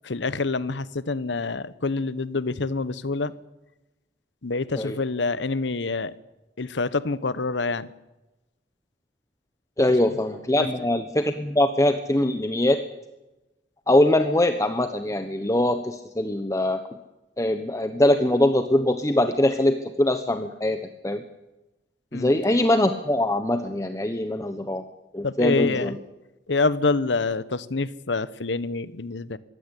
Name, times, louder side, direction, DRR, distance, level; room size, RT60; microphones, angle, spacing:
voice 1, 0.0-3.3 4.4-6.1 6.6-7.9 22.1-22.3 25.2-25.9 26.5-29.4, left 3 dB, 80° left, 17 dB, 1.0 m, -26 dB
voice 2, 9.8-12.8 13.9-16.8 17.4-20.8 21.0-21.2 22.1-24.8 25.1-26.0, left 1 dB, 15° left, 8 dB, 1.0 m, -22 dB
22.0 x 16.0 x 9.8 m, 1.0 s
head